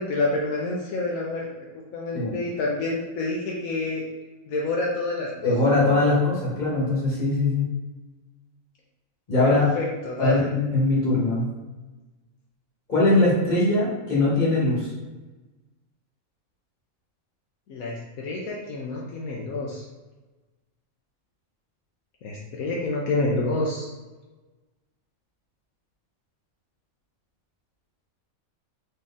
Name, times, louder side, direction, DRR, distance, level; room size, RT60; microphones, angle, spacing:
voice 1, 0.0-1.5 1.9-4.0 4.4-5.5 9.4-10.5 17.7-19.8 22.2-23.9, left 2 dB, 75° left, -3 dB, 1.2 m, -28 dB
voice 2, 5.4-7.7 9.3-9.7 10.2-11.5 12.9-14.9, left 2 dB, 35° left, -6 dB, 1.7 m, -21 dB
4.1 x 3.3 x 3.6 m, 1.2 s
omnidirectional pair, 1.5 m